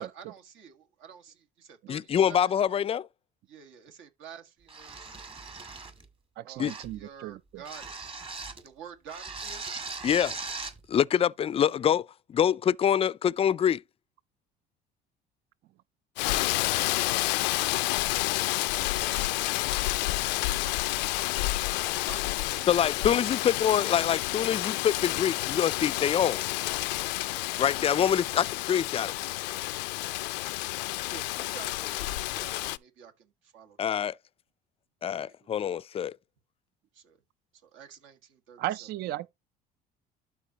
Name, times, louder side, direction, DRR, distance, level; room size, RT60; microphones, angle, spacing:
voice 1, 0.0-2.5 3.5-5.2 6.4-8.3 8.6-9.6 18.1-18.5 18.9-19.1 20.6-21.4 21.9-23.2 29.3-29.6 31.1-33.9 35.3-35.8 36.9-37.2 37.6-38.9, right 7 dB, 70° right, 1.8 m, -49 dB
voice 2, 1.9-3.1 6.6-6.7 10.0-10.3 10.9-13.8 22.7-26.4 27.6-29.1 33.8-34.2 35.0-36.1, left 9 dB, 30° left, 0.4 m, -25 dB
sound 1, 4.7-6.1 6.7-7.0 7.7-8.7 9.1-10.8, right 4 dB, 25° right, 2.0 m, -39 dB
voice 3, 6.4-7.6 38.6-39.3, right 14 dB, 50° right, 0.4 m, -35 dB
Rain, 16.2-32.8, left 20 dB, 90° left, 0.4 m, -30 dB
12.5 x 4.3 x 2.9 m
supercardioid pair, 75°, 21 cm